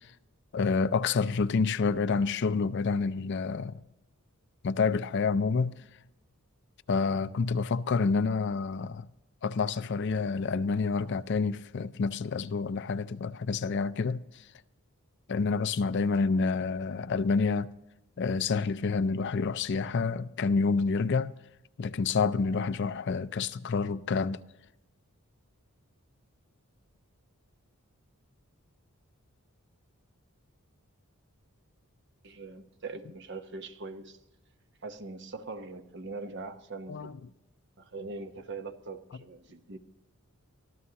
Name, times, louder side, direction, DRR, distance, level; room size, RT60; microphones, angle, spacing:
voice 1, 0.5-3.8 4.6-5.7 6.9-9.1 9.4-14.2 15.3-17.7 18.2-21.3 21.8-24.4 36.9-37.1, left 4 dB, 50° left, 0.4 m, -28 dB
voice 2, 32.2-34.2 34.8-37.1 37.8-39.8, right 3 dB, 50° right, 0.9 m, -41 dB
24.0 x 14.5 x 2.9 m
head